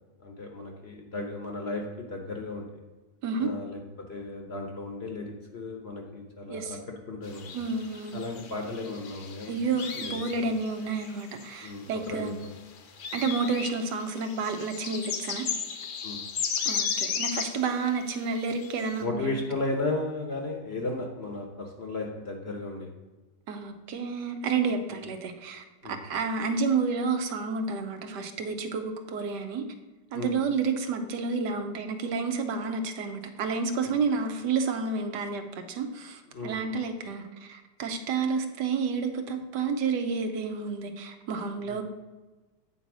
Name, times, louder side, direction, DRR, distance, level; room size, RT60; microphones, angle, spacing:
voice 1, 0.2-2.7 3.4-7.6 8.1-10.5 11.6-12.5 16.0-16.2 19.0-22.9 24.9-25.0 25.8-26.0 30.1-30.3 33.8-33.9 36.3-36.7 41.6-41.8, left 2 dB, 45° left, 2 dB, 0.9 m, -35 dB
sound 1, 7.3-11.6 12.0-17.7 18.2-18.9, left 6 dB, 65° left, 1.2 m, -34 dB
voice 2, 7.5-8.2 9.5-12.4 13.1-15.4 16.7-19.4 23.5-29.6 30.1-41.8, right 4 dB, 75° right, 6 dB, 1.4 m, -30 dB
8.6 x 4.1 x 6.0 m, 1.2 s
omnidirectional pair, 1.9 m